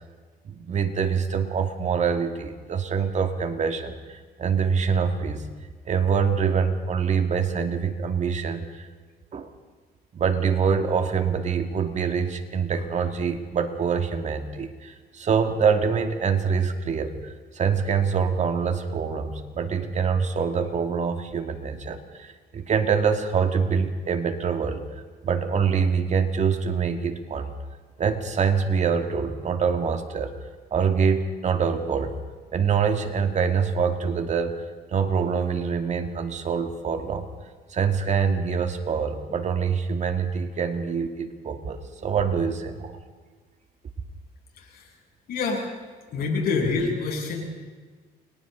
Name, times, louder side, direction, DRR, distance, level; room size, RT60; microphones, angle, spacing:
voice 1, 0.4-5.5 5.9-8.9 9.3-9.5 10.1-24.8 25.2-27.5 28.0-30.3 30.7-32.1 32.5-34.6 34.9-37.3 37.7-42.9, right 6 dB, 45° right, 6 dB, 2.3 m, -25 dB
voice 2, 44.6-44.9 45.3-45.7 46.1-47.7, left 4 dB, 65° left, 0 dB, 7.7 m, -27 dB
29.5 x 24.0 x 4.0 m, 1.4 s
cardioid pair, 110°, 17 cm